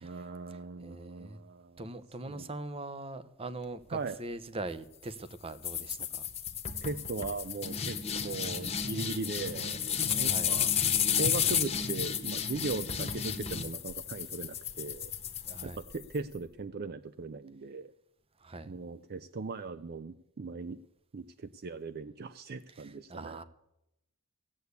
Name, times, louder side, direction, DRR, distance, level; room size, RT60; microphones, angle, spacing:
voice 1, 0.0-1.9 2.3-2.5 3.9-4.2 6.8-8.0 8.2-10.7 11.2-15.1 15.6-17.9 18.7-20.8 21.1-23.4, right 4 dB, 50° right, 13 dB, 0.5 m, -39 dB
voice 2, 0.8-1.4 1.8-6.3 10.2-10.5 15.4-15.8 18.4-18.7 23.1-23.4, right 2 dB, 30° right, 12 dB, 0.8 m, -41 dB
sound 1, 5.6-16.2, left 8 dB, 30° left, 1.1 m, -32 dB
16.5 x 8.3 x 8.1 m, 0.87 s
head